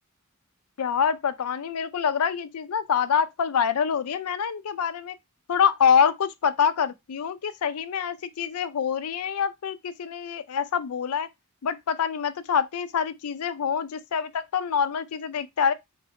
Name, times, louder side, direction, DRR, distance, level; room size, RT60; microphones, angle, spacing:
voice 1, 0.8-5.2 5.5-11.3 11.6-15.7, left 7 dB, 80° left, 0.4 m, -25 dB
3.9 x 2.2 x 4.5 m
head